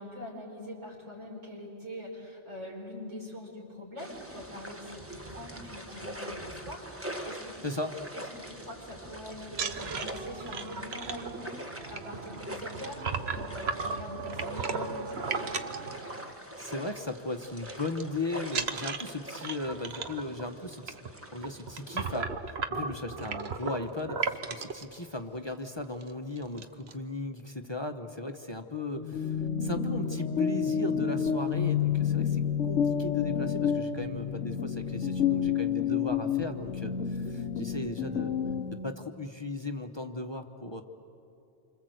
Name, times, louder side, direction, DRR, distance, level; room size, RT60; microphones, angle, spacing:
voice 1, 0.0-7.6 8.1-15.5, equal, 85° right, -2 dB, 6.0 m, -43 dB
sound 1, 4.0-22.2, equal, 10° right, 1.4 m, -44 dB
voice 2, 7.6-8.0 16.6-38.3 38.8-40.8, left 2 dB, 25° left, 6 dB, 1.0 m, -37 dB
sound 2, 9.5-16.6 16.9-17.2 17.4-18.0 18.5-24.8 25.5-25.6 25.9-26.1 26.4-26.9, right 4 dB, 60° right, 1.3 m, -36 dB
sound 3, 28.9-38.9, left 7 dB, 85° left, 1.3 m, -29 dB
28.0 x 25.5 x 7.9 m, 2.7 s
omnidirectional pair, 1.2 m